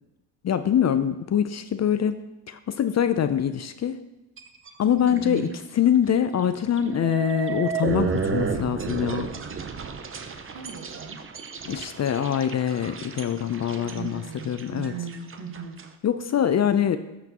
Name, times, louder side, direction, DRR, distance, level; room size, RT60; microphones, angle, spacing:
voice 1, 0.4-2.2 2.5-4.0 4.8-9.3 11.6-14.9 16.0-17.0, left 9 dB, 35° left, 11 dB, 0.5 m, -24 dB
sound 1, 4.4-4.7 5.1-5.5 5.9-6.0 6.8-15.9, right 5 dB, 30° right, 0.8 m, -32 dB
voice 2, 5.0-5.5 10.5-11.2 13.7-15.9, right 6 dB, 65° right, 2 dB, 1.7 m, -37 dB
12.5 x 5.8 x 3.0 m, 0.99 s
supercardioid pair, 70°, 46 cm